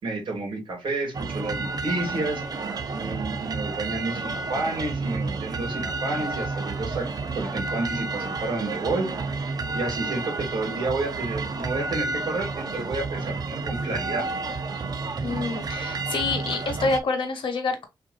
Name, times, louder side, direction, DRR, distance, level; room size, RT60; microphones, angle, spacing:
voice 1, 0.0-2.4 2.9-7.1 7.3-9.1 9.7-14.3, right 2 dB, 70° right, 2.2 m, -30 dB
sound 1, 1.1-17.0, right 3 dB, 50° right, 0.7 m, -31 dB
voice 2, 15.2-17.9, left 3 dB, 75° left, 1.4 m, -27 dB
6.5 x 2.9 x 2.6 m
wide cardioid pair, 135°, 9 cm